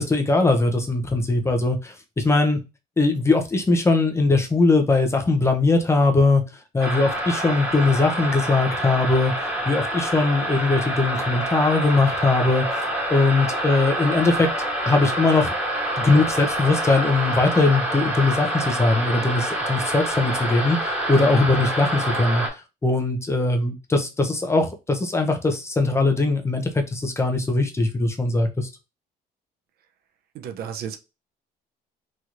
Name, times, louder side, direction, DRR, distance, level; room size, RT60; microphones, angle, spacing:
voice 1, 0.0-2.6 3.0-6.4 6.7-9.3 9.7-12.6 13.1-14.5 14.9-15.5 16.0-20.8 21.1-22.4 22.8-28.7, left 3 dB, 15° left, 0.6 m, -20 dB
sound 1, 6.8-22.5, right 1 dB, 10° right, 1.3 m, -27 dB
voice 2, 30.3-31.0, right 8 dB, 65° right, 0.5 m, -32 dB
3.0 x 2.8 x 2.4 m
cardioid pair, 110°, 17 cm